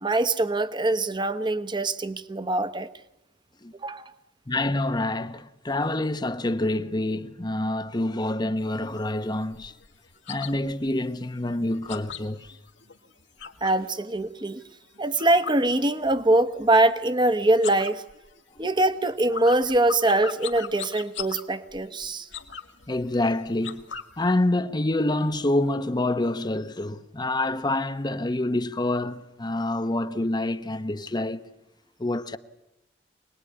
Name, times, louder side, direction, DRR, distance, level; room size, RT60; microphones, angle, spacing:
voice 1, 0.0-2.9 3.8-4.1 13.6-14.6 15.0-18.0 18.6-22.3, right 2 dB, 25° right, 1.1 m, -23 dB
voice 2, 4.5-9.7 10.3-12.6 22.9-23.8 24.2-31.4 32.0-32.4, left 1 dB, 25° left, 0.9 m, -27 dB
sound 1, 8.6-13.9 14.2-16.4 16.6-17.2 17.5-24.3, left 7 dB, 70° left, 2.0 m, -40 dB
25.5 x 20.0 x 9.7 m
head